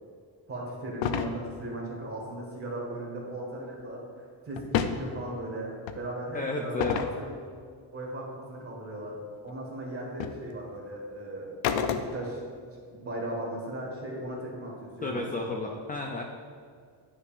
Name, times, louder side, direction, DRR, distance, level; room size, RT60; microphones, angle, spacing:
voice 1, 0.5-7.3 7.9-9.2 9.4-11.5 11.8-12.4 12.7-15.3, right 1 dB, 25° right, -2 dB, 1.7 m, -37 dB
sound 1, 1.0-1.3 4.6-5.0 5.9-6.0 6.8-7.2 9.5-9.6 10.2-10.4 11.6-12.4, left 8 dB, 65° left, 0.6 m, -28 dB
voice 2, 6.3-7.0 15.0-16.2, left 2 dB, 20° left, 1 dB, 0.3 m, -32 dB
9.5 x 5.4 x 2.5 m, 2.1 s
cardioid pair, 130°, 49 cm